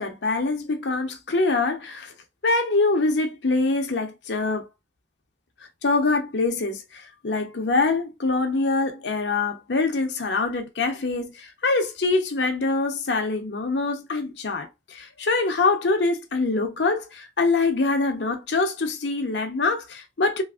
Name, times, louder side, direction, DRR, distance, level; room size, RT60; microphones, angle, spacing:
voice 1, 0.0-2.1 2.4-4.7 5.8-20.4, left 3 dB, 80° left, 0.7 m, -24 dB
3.1 x 2.5 x 2.3 m
head